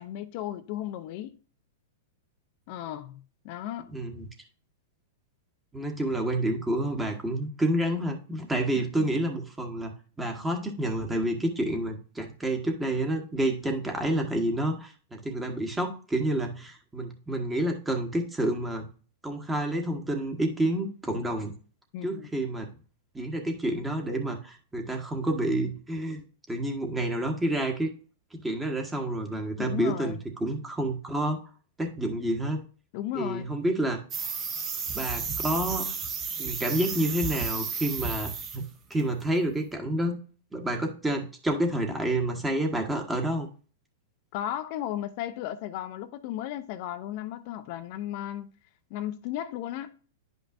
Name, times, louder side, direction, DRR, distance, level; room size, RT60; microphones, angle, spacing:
voice 1, 0.0-1.4 2.7-3.9 9.0-9.2 21.9-22.3 29.6-30.2 32.9-33.5 44.3-48.5 48.9-49.9, left 12 dB, 50° left, 0.6 m, -35 dB
voice 2, 3.9-4.3 5.7-9.9 10.2-18.9 19.2-21.5 22.0-22.7 23.1-27.9 28.3-31.4 31.8-32.6 33.1-34.0 34.9-35.8 36.4-38.6 38.9-40.2 40.5-43.5, right 1 dB, 10° right, 1.4 m, -29 dB
sound 1, 34.1-38.6 38.9-39.2, right 5 dB, 30° right, 1.2 m, -33 dB
10.0 x 5.4 x 2.5 m
hypercardioid pair, 120°, 0 cm